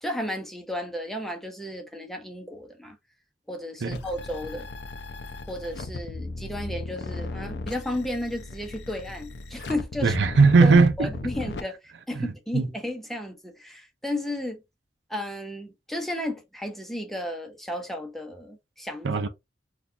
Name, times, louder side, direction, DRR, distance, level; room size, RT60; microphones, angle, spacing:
voice 1, 0.0-3.0 3.5-4.7 5.5-10.2 10.6-14.6 15.1-19.1, left 1 dB, ahead, 0.7 m, -33 dB
sound 1, 3.9-11.6, left 2 dB, 70° left, 0.5 m, -36 dB
voice 2, 10.0-11.1 12.2-12.3 12.5-12.7 19.0-19.3, right 4 dB, 85° right, 0.5 m, -18 dB
3.9 x 2.4 x 2.7 m
head